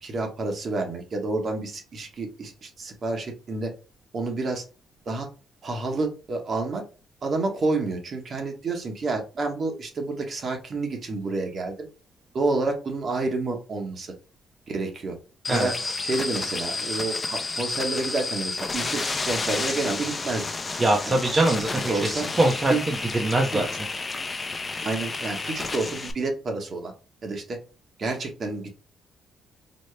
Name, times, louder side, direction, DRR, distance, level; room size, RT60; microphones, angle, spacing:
voice 1, 0.0-3.7 4.1-4.6 5.1-5.3 5.6-6.8 7.2-11.9 12.3-14.1 14.7-15.2 15.5-15.7 16.0-20.4 20.7-20.8 21.0-21.2 21.9-22.3 22.7-22.8 23.5-23.6 24.8-26.9 27.2-27.6 28.0-28.7, right 3 dB, 50° right, 3 dB, 1.1 m, -29 dB
sound 1, 15.4-26.1, left 3 dB, 30° left, 0.5 m, -31 dB
voice 2, 15.5-15.9 20.8-23.9, right 2 dB, 25° right, 1 dB, 0.7 m, -23 dB
4.2 x 2.0 x 3.2 m, 0.33 s
cardioid pair, 90°, 0 cm